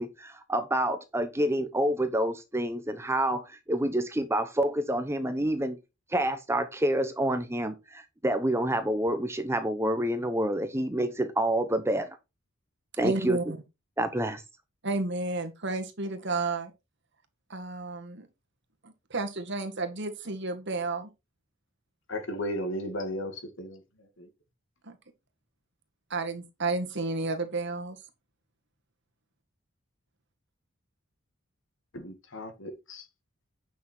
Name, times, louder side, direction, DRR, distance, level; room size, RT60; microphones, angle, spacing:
voice 1, 0.0-5.8 6.1-12.1 13.0-13.4 14.0-14.4, right 1 dB, 10° right, 0.8 m, -28 dB
voice 2, 13.0-13.6 14.8-16.7 17.5-18.3 18.8-21.1 24.8-25.0 26.1-28.0, right 3 dB, 55° right, 1.9 m, -32 dB
voice 3, 22.1-23.8 24.2-24.3 31.9-33.1, equal, 65° left, 2.1 m, -35 dB
9.3 x 6.2 x 4.4 m
head